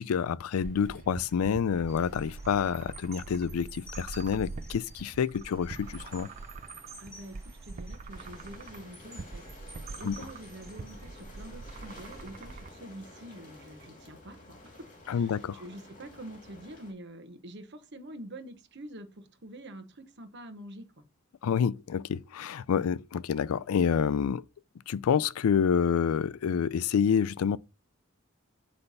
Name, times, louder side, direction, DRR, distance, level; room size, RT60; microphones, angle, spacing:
voice 1, 0.0-6.3 10.0-10.1 15.1-15.6 21.4-24.4 24.9-27.6, left 7 dB, 85° left, 0.4 m, -28 dB
sound 1, 0.6-12.7, right 3 dB, 35° right, 0.4 m, -44 dB
sound 2, 1.9-12.4 12.9-13.1, right 2 dB, 15° right, 3.3 m, -53 dB
voice 2, 7.0-21.0, right 1 dB, 55° right, 1.1 m, -46 dB
sound 3, 8.1-16.9, left 2 dB, 35° left, 2.3 m, -51 dB
8.0 x 3.3 x 5.5 m
head